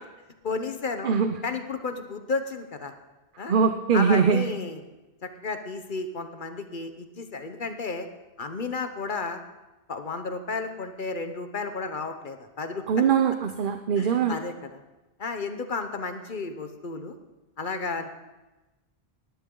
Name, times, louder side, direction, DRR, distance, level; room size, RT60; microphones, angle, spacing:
voice 1, 0.4-1.2 1.4-2.9 3.4-3.5 3.9-4.8 5.2-8.1 8.4-9.4 9.9-13.0 14.0-14.8 15.2-17.1 17.6-18.1, left 4 dB, 55° left, 7 dB, 1.1 m, -33 dB
voice 2, 1.0-1.3 3.5-4.4 12.9-14.4, right 6 dB, 55° right, 7 dB, 0.8 m, -22 dB
19.0 x 11.5 x 3.8 m, 1.1 s
omnidirectional pair, 1.1 m